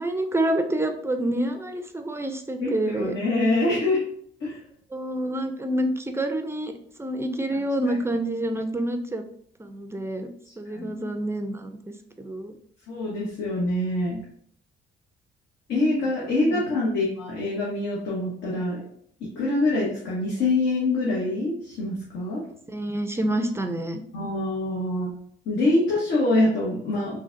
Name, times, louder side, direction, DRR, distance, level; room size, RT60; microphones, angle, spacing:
voice 1, 0.0-3.2 4.9-6.7 7.0-9.3 9.6-10.3 10.6-12.6 16.5-16.6 22.7-24.0, right 1 dB, 15° right, 6 dB, 0.4 m, -28 dB
voice 2, 2.6-4.0 4.4-4.6 10.7-10.9 12.9-14.2 15.7-18.8 19.4-22.4 24.1-25.1 25.5-27.2, left 2 dB, 75° left, -5 dB, 1.1 m, -25 dB
3.8 x 2.7 x 2.5 m, 0.63 s
cardioid pair, 90°, 20 cm